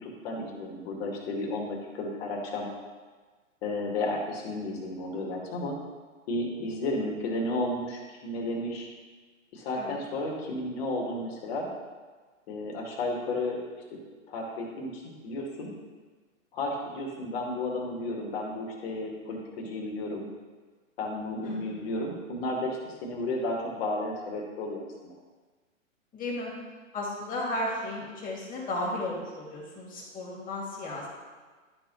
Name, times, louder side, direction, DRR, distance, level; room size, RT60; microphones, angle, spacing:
voice 1, 0.0-2.7 3.6-5.8 6.3-8.9 9.5-11.7 12.5-13.6 14.3-15.7 16.5-20.3 21.0-25.1, left 2 dB, 50° left, -1 dB, 2.4 m, -33 dB
voice 2, 21.4-21.7 26.1-26.5 26.9-31.1, left 1 dB, 20° left, -3 dB, 2.5 m, -34 dB
12.5 x 4.5 x 4.2 m, 1.4 s
hypercardioid pair, 125°, 39 cm